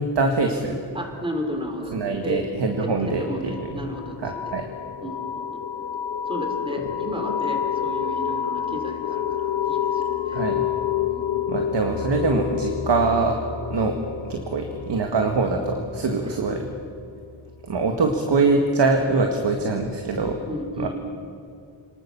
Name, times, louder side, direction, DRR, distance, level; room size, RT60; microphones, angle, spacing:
voice 1, 0.0-0.8 1.9-3.5 4.2-4.7 10.3-10.6 11.5-13.4 13.7-14.0 14.2-16.7 17.7-20.4 20.8-20.9, right 3 dB, 60° right, 3 dB, 1.9 m, -23 dB
voice 2, 0.9-2.4 2.8-4.5 5.0-5.2 5.5-5.6 6.3-10.4 11.1-11.4 16.2-16.4 20.5-20.9, equal, 10° right, 4 dB, 3.1 m, -33 dB
sound 1, 3.1-17.5, left 9 dB, 65° left, 1.2 m, -29 dB
29.0 x 19.5 x 7.1 m, 2.4 s
wide cardioid pair, 175°, 48 cm